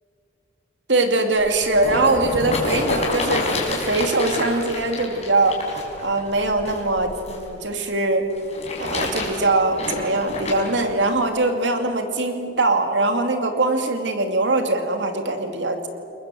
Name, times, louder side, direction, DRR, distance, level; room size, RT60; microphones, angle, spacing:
voice 1, 0.9-5.6 6.0-8.3 8.8-15.9, right 2 dB, 80° right, 5 dB, 2.7 m, -22 dB
sound 1, 1.3-7.4 8.3-10.8 11.5-11.6, left 2 dB, 40° left, 5.6 m, -28 dB
30.0 x 21.5 x 7.8 m, 2.5 s
head